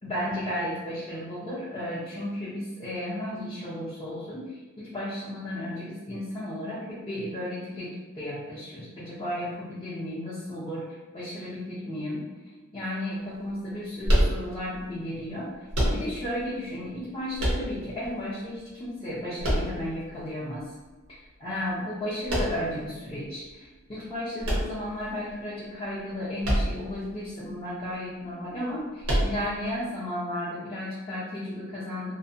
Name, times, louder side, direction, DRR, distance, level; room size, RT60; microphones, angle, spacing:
voice 1, 0.0-10.8 11.1-12.2 12.7-15.5 15.8-20.6 21.4-32.2, left 1 dB, 25° left, -9 dB, 0.4 m, -34 dB
sound 1, 14.0-14.8 15.7-16.4 17.4-18.1 19.4-20.2 22.3-22.8 24.4-25.3 26.4-27.0 27.3-27.4 29.0-29.7, equal, 75° right, 0.8 m, -26 dB
2.6 x 2.1 x 2.6 m, 1.3 s
head